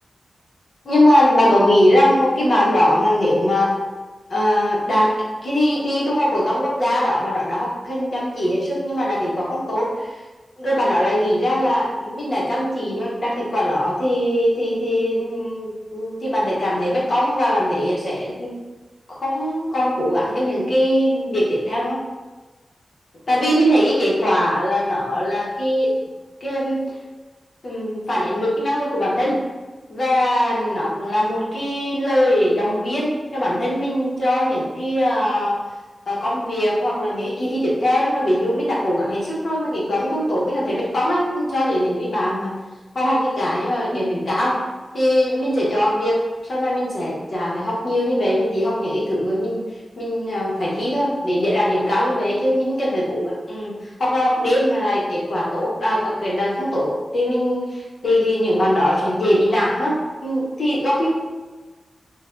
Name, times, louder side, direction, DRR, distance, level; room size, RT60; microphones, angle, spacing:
voice 1, 0.8-3.7 4.3-5.1 5.4-10.1 10.6-18.5 19.1-22.0 23.3-25.9 26.4-26.8 27.6-29.4 29.9-35.6 36.1-42.5 42.9-44.6 44.9-49.6 50.0-53.7 54.0-61.1, equal, 50° left, -5 dB, 1.2 m, -21 dB
5.5 x 2.6 x 2.5 m, 1.2 s
wide cardioid pair, 150°, 0 cm